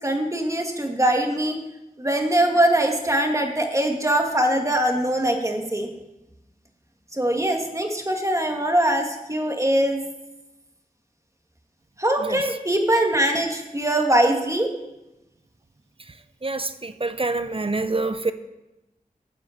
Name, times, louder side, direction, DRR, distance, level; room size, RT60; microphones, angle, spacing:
voice 1, 0.0-1.6 2.0-5.9 7.1-10.0 12.0-14.7, right 1 dB, 20° right, 1.9 m, -22 dB
voice 2, 16.4-18.3, right 3 dB, 35° right, 0.7 m, -26 dB
10.0 x 7.6 x 7.3 m
wide cardioid pair, 45°, 15 cm